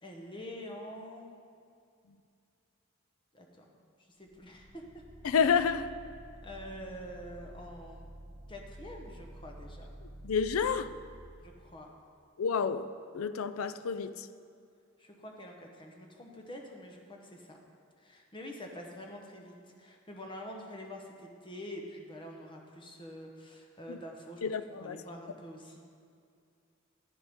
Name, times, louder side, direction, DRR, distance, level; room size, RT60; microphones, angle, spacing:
voice 1, 0.0-1.3 3.3-3.7 4.2-5.0 6.4-8.1 8.5-9.9 11.4-11.9 15.0-17.6 18.0-24.4 24.8-25.9, equal, 25° left, 0.9 m, -46 dB
sound 1, 4.3-12.0, right 1 dB, 30° right, 1.5 m, -50 dB
voice 2, 5.2-5.9 10.2-10.9 12.4-14.3 23.9-24.0 24.4-25.0, left 6 dB, 80° left, 0.4 m, -30 dB
10.5 x 9.4 x 3.6 m
head